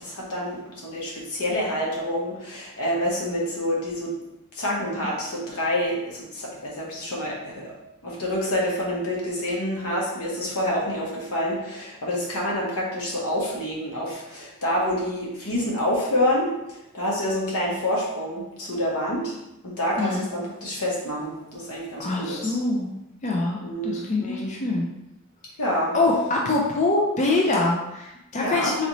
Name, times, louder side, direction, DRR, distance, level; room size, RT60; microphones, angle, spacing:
voice 1, 0.0-4.1 4.5-7.7 8.0-19.3 19.6-22.6 23.6-24.5 25.6-25.9 28.4-28.7, left 1 dB, 85° left, -4 dB, 1.2 m, -27 dB
voice 2, 22.0-22.9 23.2-24.9 25.9-28.9, left 2 dB, 35° left, -2 dB, 0.4 m, -24 dB
4.0 x 2.6 x 3.0 m, 0.90 s
head